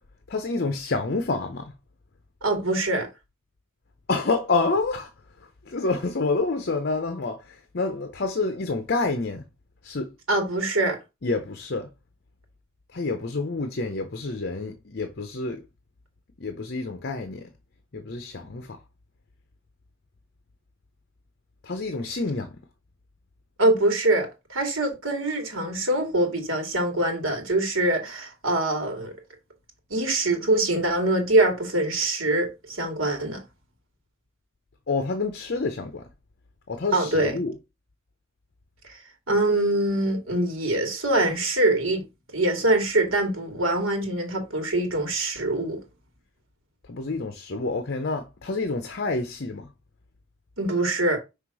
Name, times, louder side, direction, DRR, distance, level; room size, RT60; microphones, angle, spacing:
voice 1, 0.3-1.7 4.1-5.1 5.7-9.4 9.8-10.1 11.2-11.9 12.9-15.6 16.4-17.5 17.9-18.8 21.6-22.5 34.9-36.1 36.7-37.5 46.9-49.7, left 3 dB, 50° left, 0.7 m, -28 dB
voice 2, 2.4-3.1 10.3-11.0 23.6-29.1 29.9-33.4 36.9-37.3 38.8-39.0 39.3-42.0 42.3-45.8 50.6-51.2, right 2 dB, 85° right, 2.2 m, -24 dB
5.8 x 3.4 x 4.7 m
head